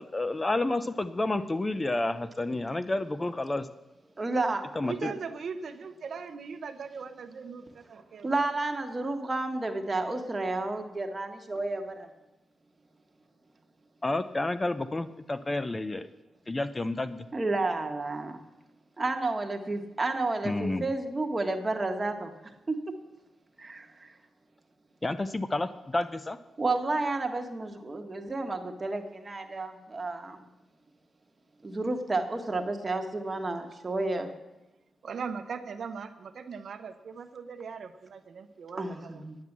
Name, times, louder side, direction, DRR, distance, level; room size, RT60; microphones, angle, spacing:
voice 1, 0.0-3.7 4.8-5.1 14.0-16.1 16.5-17.3 20.4-20.9 25.0-26.4, left 2 dB, 25° left, 12 dB, 0.5 m, -30 dB
voice 2, 2.1-2.6 4.8-8.3 35.0-39.2, right 5 dB, 65° right, 8 dB, 0.8 m, -40 dB
voice 3, 4.2-4.6 5.0-5.1 8.2-12.1 17.3-18.4 19.0-22.3 22.7-22.8 23.6-24.1 26.6-30.4 31.6-34.3 38.8-39.4, right 2 dB, 25° right, 5 dB, 1.4 m, -31 dB
9.6 x 9.2 x 7.3 m, 1.0 s
cardioid pair, 85°, 0 cm